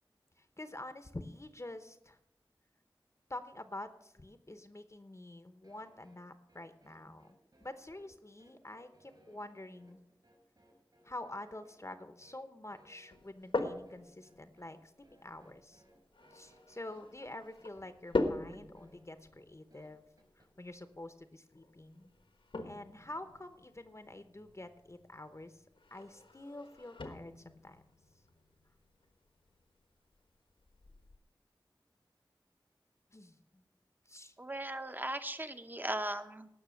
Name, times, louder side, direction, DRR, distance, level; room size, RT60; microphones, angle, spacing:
voice 1, 0.4-2.2 3.3-10.0 11.0-15.8 16.3-20.1 20.4-22.1 22.6-25.6 25.9-27.8 33.1-33.6 34.1-34.3, left 1 dB, 35° left, 10 dB, 0.8 m, -47 dB
sound 1, 5.6-20.5, right 1 dB, 55° right, 4.7 m, -66 dB
sound 2, 13.1-31.2, left 2 dB, 80° left, 1.3 m, -43 dB
voice 2, 34.4-36.5, right 1 dB, 20° right, 9 dB, 0.9 m, -38 dB
18.0 x 6.2 x 6.3 m, 0.81 s
wide cardioid pair, 65°, 9 cm